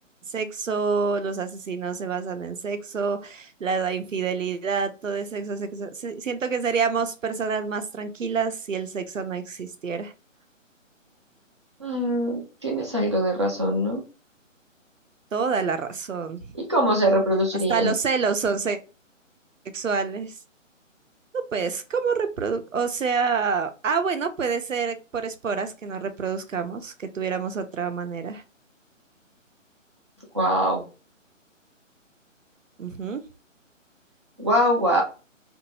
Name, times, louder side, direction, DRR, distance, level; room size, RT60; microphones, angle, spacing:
voice 1, 0.3-10.1 15.3-16.5 17.7-18.8 19.7-20.3 21.5-28.4 32.8-33.2, right 5 dB, 70° right, 9 dB, 0.6 m, -27 dB
voice 2, 11.8-14.0 16.7-17.9 30.3-30.8 34.4-35.0, equal, 20° right, -1 dB, 0.6 m, -23 dB
2.8 x 2.5 x 2.8 m, 0.32 s
figure-of-eight pair, 145°, 39 cm